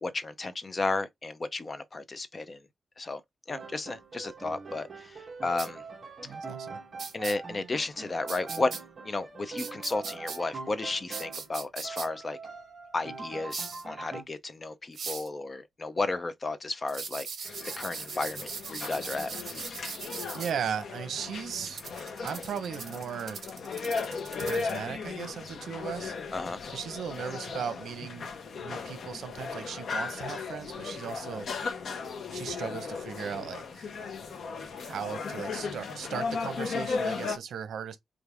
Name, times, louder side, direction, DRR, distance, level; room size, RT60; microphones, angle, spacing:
voice 1, 0.0-2.6 3.0-3.2 3.5-5.8 7.1-8.7 9.0-12.4 12.9-17.3 17.8-19.3 26.3-26.6, left 3 dB, 25° left, 0.5 m, -33 dB
Piano, 3.5-11.5 11.8-14.2, right 4 dB, 30° right, 1.2 m, -43 dB
sound 1, 5.6-5.7 7.0-7.3 8.3-8.8 9.6-10.4 11.1-12.1 13.5-13.8 14.9-15.3 16.9-20.5 21.5-24.8, right 5 dB, 55° right, 1.3 m, -39 dB
voice 2, 6.2-6.8 20.1-21.8 22.2-23.4 24.4-26.1 26.7-28.3 28.6-31.5 32.3-33.9 34.7-38.0, right 7 dB, 75° right, 0.8 m, -37 dB
sound 2, 17.5-37.4, left 4 dB, 60° left, 0.8 m, -36 dB
4.7 x 2.5 x 3.4 m
wide cardioid pair, 160°, 0 cm